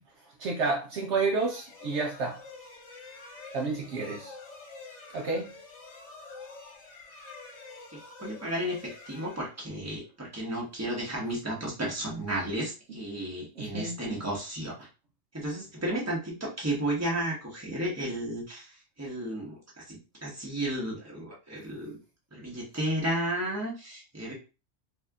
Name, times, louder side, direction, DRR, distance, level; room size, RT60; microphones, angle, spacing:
voice 1, 0.4-2.4 3.5-4.3 5.1-5.5 13.6-14.0, right 3 dB, 65° right, 0.9 m, -30 dB
sound 1, 1.3-10.1, left 3 dB, 65° left, 1.2 m, -48 dB
voice 2, 7.9-14.9 15.3-22.0 22.3-24.3, right 1 dB, 10° right, 1.2 m, -33 dB
4.3 x 2.8 x 2.3 m
omnidirectional pair, 1.3 m